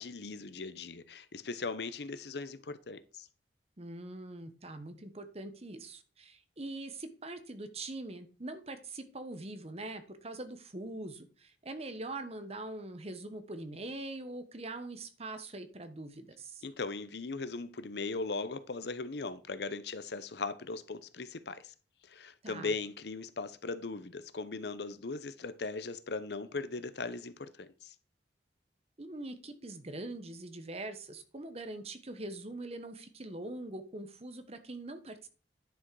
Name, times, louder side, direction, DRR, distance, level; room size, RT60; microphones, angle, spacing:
voice 1, 0.0-3.3 16.6-21.7 22.0-27.9, left 3 dB, 65° left, 0.7 m, -39 dB
voice 2, 3.8-16.6 22.4-22.7 29.0-35.3, right 2 dB, 35° right, 1.1 m, -43 dB
10.5 x 6.2 x 4.7 m
head